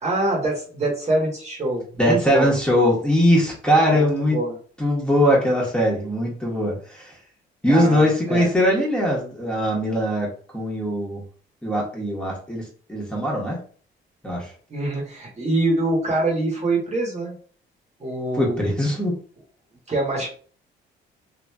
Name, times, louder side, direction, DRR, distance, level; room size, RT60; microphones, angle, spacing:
voice 1, 0.0-2.5 3.9-4.6 7.7-8.5 14.7-17.4 18.0-18.6 19.9-20.3, right 2 dB, 35° right, -2 dB, 1.1 m, -24 dB
voice 2, 2.0-4.4 4.8-7.1 7.6-10.3 10.5-11.2 11.6-12.6 12.9-13.6 14.2-14.5 18.4-19.2, equal, 5° left, -3 dB, 1.1 m, -21 dB
3.0 x 2.5 x 2.2 m, 0.43 s
cardioid pair, 90°, 20 cm